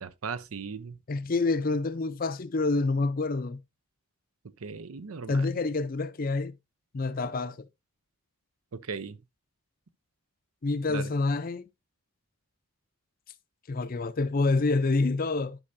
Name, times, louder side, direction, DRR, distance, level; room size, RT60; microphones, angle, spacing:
voice 1, 0.0-1.0 4.6-5.5 8.7-9.2 10.9-11.1, right 5 dB, 80° right, 0.6 m, -37 dB
voice 2, 1.1-3.6 5.3-6.5 6.9-7.7 10.6-11.6 13.7-15.6, left 3 dB, 40° left, 0.5 m, -27 dB
11.5 x 5.4 x 2.6 m
head